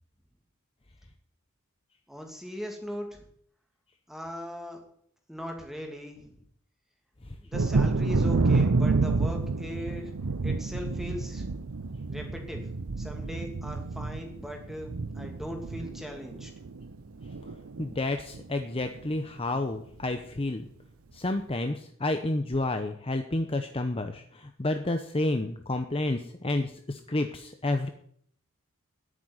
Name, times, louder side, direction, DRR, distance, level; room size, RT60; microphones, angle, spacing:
voice 1, 2.1-3.2 4.1-4.8 5.3-6.3 7.4-10.1 10.4-11.4 12.1-12.6 13.0-16.5, equal, ahead, 2 dB, 2.6 m, -39 dB
Thunder, 7.5-17.0 17.2-17.9 18.3-18.4 18.8-19.0, right 3 dB, 85° right, 0.7 m, -29 dB
voice 2, 17.8-20.7 21.1-27.9, left 2 dB, 25° left, 6 dB, 0.8 m, -30 dB
10.0 x 9.0 x 9.5 m, 0.65 s
head